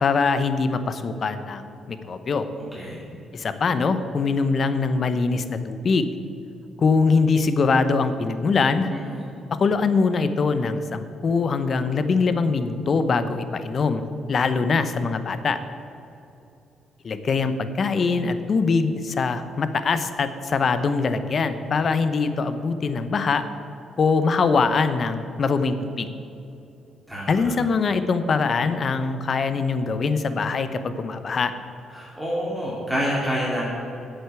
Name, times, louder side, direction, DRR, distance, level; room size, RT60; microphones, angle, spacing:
voice 1, 0.0-2.5 3.3-6.1 6.8-8.9 9.6-14.0 14.3-15.6 17.0-23.4 24.0-26.1 27.3-31.5, left 4 dB, 45° left, 11 dB, 0.8 m, -23 dB
voice 2, 8.9-9.2 27.1-27.5 31.9-33.7, equal, 5° right, -6 dB, 2.7 m, -28 dB
8.1 x 7.9 x 8.3 m, 2.7 s
cardioid pair, 90°, 0 cm